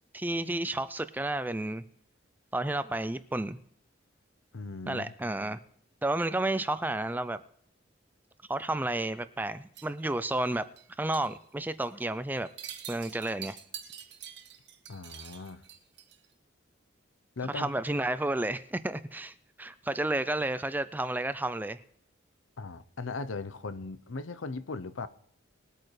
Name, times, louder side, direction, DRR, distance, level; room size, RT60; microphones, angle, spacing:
voice 1, 0.1-1.8 2.5-3.6 4.9-5.6 6.0-7.4 8.5-10.7 11.0-12.5 12.9-13.6 17.5-21.8, right 2 dB, 10° right, 0.4 m, -31 dB
voice 2, 4.5-5.1 14.9-15.6 17.4-17.7 22.6-25.1, left 3 dB, 80° left, 0.7 m, -38 dB
sound 1, 9.7-10.9 11.1-11.4 11.7-12.0 12.4-16.3, right 9 dB, 60° right, 1.4 m, -46 dB
21.5 x 8.8 x 3.2 m
head